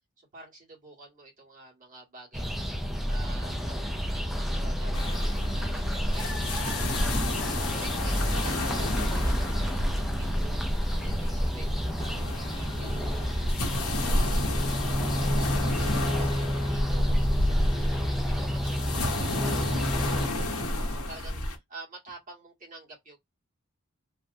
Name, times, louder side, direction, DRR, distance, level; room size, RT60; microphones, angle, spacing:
voice 1, 0.2-2.6 3.1-10.6 11.0-13.3 13.7-20.1 20.3-23.2, right 2 dB, 40° right, 1.7 m, -49 dB
sound 1, 2.3-20.3, equal, ahead, 0.4 m, -30 dB
sound 2, 4.9-21.6, left 1 dB, 90° left, 0.9 m, -30 dB
3.2 x 2.1 x 2.6 m
head